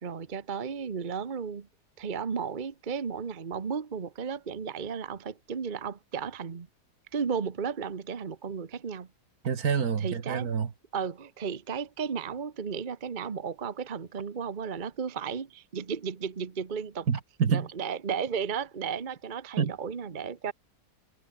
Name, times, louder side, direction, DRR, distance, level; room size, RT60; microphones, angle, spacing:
voice 1, 0.0-1.7 2.0-6.7 7.1-9.1 10.0-10.5 10.9-17.1 17.5-20.5, right 6 dB, 35° right, 1.1 m, -34 dB
voice 2, 9.4-10.7 17.1-17.7 19.6-19.7, right 6 dB, 65° right, 2.1 m, -27 dB
omnidirectional pair, 1.7 m